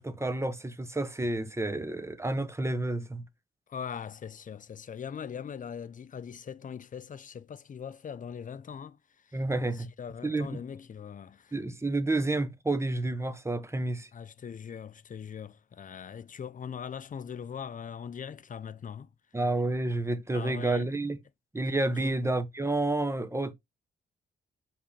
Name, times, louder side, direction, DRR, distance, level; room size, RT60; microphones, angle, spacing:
voice 1, 0.0-3.2 9.3-9.9 10.2-10.6 11.5-14.1 19.3-21.2 21.5-23.5, right 2 dB, 15° right, 0.8 m, -30 dB
voice 2, 3.7-9.0 9.3-9.4 9.8-11.5 14.1-19.1 20.3-20.9 22.0-22.1, left 7 dB, 40° left, 0.5 m, -41 dB
4.8 x 3.5 x 3.2 m
cardioid pair, 65°, 20 cm